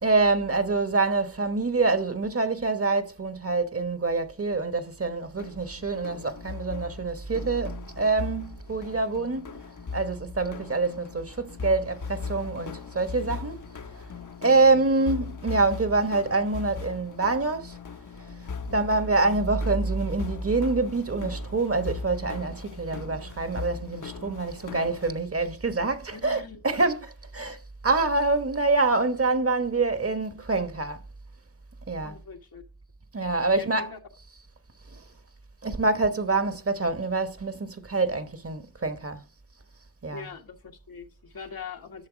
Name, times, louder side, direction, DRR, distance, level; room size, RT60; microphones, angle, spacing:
voice 1, 0.0-9.6 9.9-13.6 14.4-17.8 18.7-31.0 31.9-32.2 33.1-33.9 34.9-35.0 35.6-39.2 40.0-40.3, right 3 dB, 40° right, 1.1 m, -26 dB
sound 1, 5.4-25.1, left 5 dB, 60° left, 0.9 m, -39 dB
voice 2, 26.1-26.6 32.0-32.7 33.6-34.0 40.1-42.1, left 6 dB, 85° left, 1.7 m, -42 dB
11.0 x 6.7 x 5.0 m
cardioid pair, 55°, 35 cm